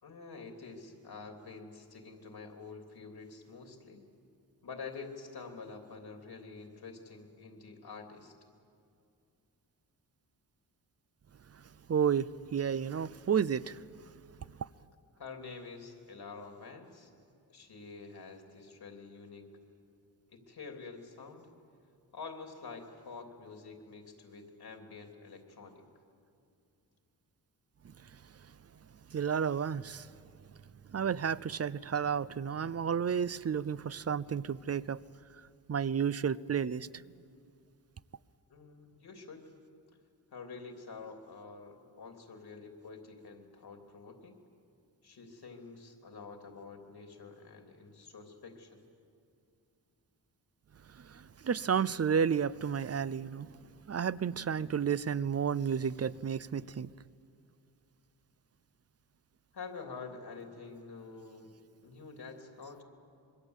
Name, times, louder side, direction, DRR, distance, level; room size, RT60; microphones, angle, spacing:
voice 1, 0.0-4.0 4.6-8.3 14.4-14.5 15.2-17.1 17.5-19.5 20.3-21.5 22.1-25.8 38.5-39.4 40.3-44.3 45.0-48.8 59.5-61.5 61.8-62.8, left 4 dB, 70° left, 3.3 m, -47 dB
voice 2, 11.9-13.8 29.1-30.1 30.9-35.0 35.7-37.0 51.0-53.5 53.9-56.9, right 7 dB, 40° right, 0.6 m, -31 dB
26.0 x 22.5 x 8.2 m
cardioid pair, 75°, 40 cm